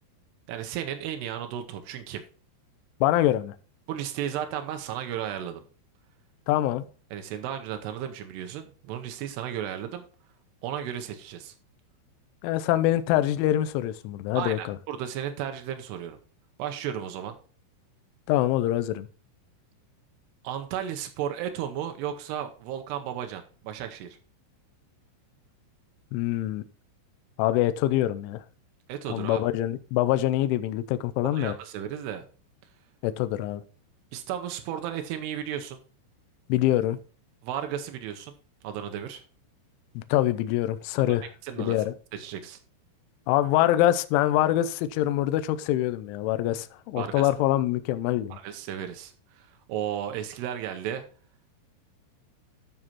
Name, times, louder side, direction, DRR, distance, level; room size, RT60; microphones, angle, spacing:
voice 1, 0.5-2.2 3.9-5.6 7.1-10.1 10.6-11.5 14.4-16.2 16.6-17.4 20.4-24.2 28.9-29.4 31.2-32.3 34.1-35.8 37.4-38.4 38.6-39.2 41.0-41.2 41.4-41.7 42.1-42.6 47.0-47.3 48.3-51.0, right 10 dB, 85° right, 2.3 m, -34 dB
voice 2, 3.0-3.6 6.5-6.9 12.4-14.8 18.3-19.1 26.1-26.6 27.4-28.4 29.1-31.5 33.0-33.6 36.5-37.0 40.0-41.2 41.6-41.9 43.3-48.4, left 14 dB, 80° left, 2.9 m, -24 dB
12.5 x 6.3 x 2.9 m
omnidirectional pair, 5.9 m